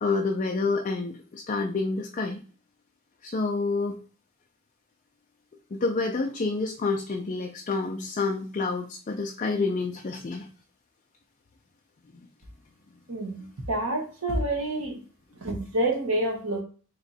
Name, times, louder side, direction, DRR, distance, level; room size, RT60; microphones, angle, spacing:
voice 1, 0.0-2.4 3.2-4.0 5.7-10.5, left 3 dB, 35° left, 4 dB, 0.4 m, -28 dB
voice 2, 13.1-15.0 15.4-16.6, right 1 dB, 75° right, 1 dB, 1.3 m, -28 dB
3.5 x 3.1 x 4.0 m, 0.39 s
head